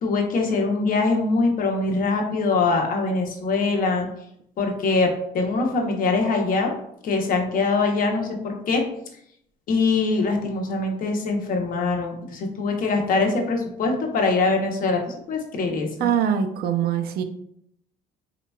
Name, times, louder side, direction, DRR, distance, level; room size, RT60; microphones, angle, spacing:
voice 1, 0.0-4.1 4.6-6.7 7.0-8.8 9.7-15.0 15.3-16.1, left 3 dB, 55° left, 2 dB, 0.8 m, -23 dB
voice 2, 16.0-17.2, right 8 dB, 65° right, 7 dB, 0.5 m, -23 dB
4.0 x 2.9 x 2.2 m, 0.72 s
cardioid pair, 110°, 17 cm